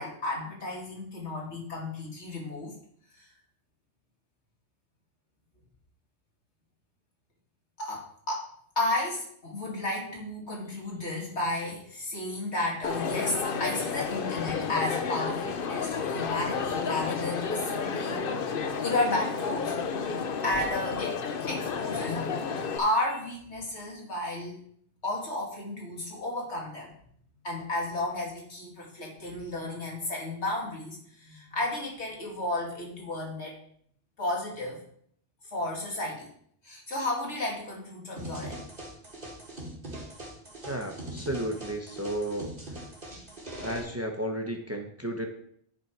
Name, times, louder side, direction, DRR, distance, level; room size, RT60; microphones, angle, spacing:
voice 1, 0.0-2.7 3.1-3.3 7.8-8.5 8.8-18.4 18.8-24.6 25.0-26.9 27.4-33.6 34.2-34.8 35.5-36.3 36.6-38.6, left 2 dB, 80° left, -2 dB, 2.7 m, -33 dB
Crowd, 12.8-22.8, left 5 dB, 55° left, 0.9 m, -31 dB
sound 1, 38.2-43.8, right 1 dB, 50° right, 2.7 m, -41 dB
voice 2, 40.7-42.5 43.6-45.3, right 1 dB, 15° right, 3 dB, 1.0 m, -33 dB
10.0 x 6.1 x 4.6 m, 0.65 s
omnidirectional pair, 1.1 m